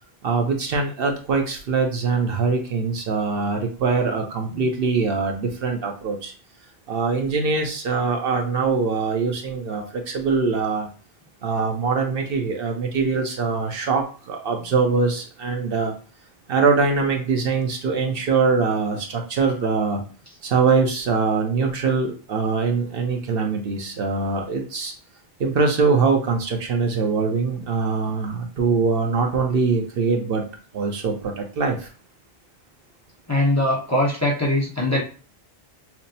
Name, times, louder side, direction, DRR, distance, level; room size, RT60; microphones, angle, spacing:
voice 1, 0.2-6.3 6.9-10.9 11.4-15.9 16.5-20.0 20.4-24.9 25.4-30.4 30.7-31.9, right 4 dB, 65° right, 2 dB, 0.9 m, -23 dB
voice 2, 33.3-35.0, left 1 dB, 15° left, -3 dB, 0.8 m, -22 dB
5.8 x 2.0 x 2.7 m, 0.39 s
omnidirectional pair, 1.0 m